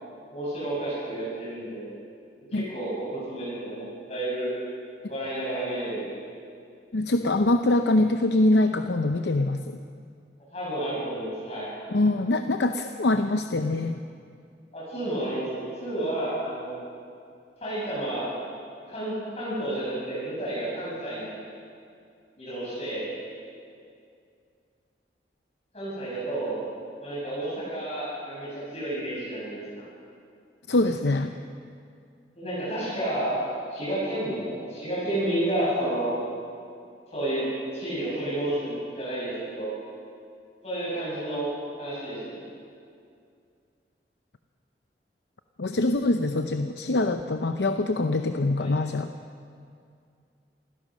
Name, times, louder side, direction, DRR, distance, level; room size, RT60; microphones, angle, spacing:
voice 1, 0.3-1.8 2.5-4.5 5.1-6.1 10.5-11.7 14.7-16.8 17.6-18.4 18.9-21.4 22.4-23.0 25.7-26.6 27.0-29.6 32.4-33.3 33.7-36.1 37.1-37.5 37.7-39.7 40.6-41.5 41.8-42.4 48.6-48.7, right 1 dB, 35° left, -8 dB, 7.3 m, -31 dB
voice 2, 6.9-9.8 11.9-14.0 30.7-31.3 45.6-49.1, left 2 dB, 80° left, 7 dB, 0.7 m, -24 dB
27.5 x 16.0 x 6.3 m, 2.4 s
head